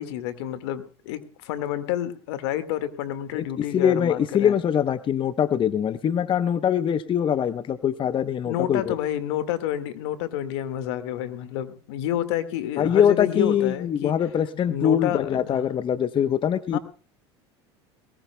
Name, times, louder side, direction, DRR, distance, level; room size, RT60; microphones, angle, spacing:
voice 1, 0.0-4.5 8.5-14.1 14.7-15.6 16.7-16.8, left 11 dB, 75° left, 11 dB, 1.8 m, -29 dB
voice 2, 3.3-9.0 12.8-16.8, left 8 dB, 35° left, 13 dB, 0.8 m, -23 dB
21.5 x 19.0 x 2.2 m, 0.37 s
hypercardioid pair, 90°, 14 cm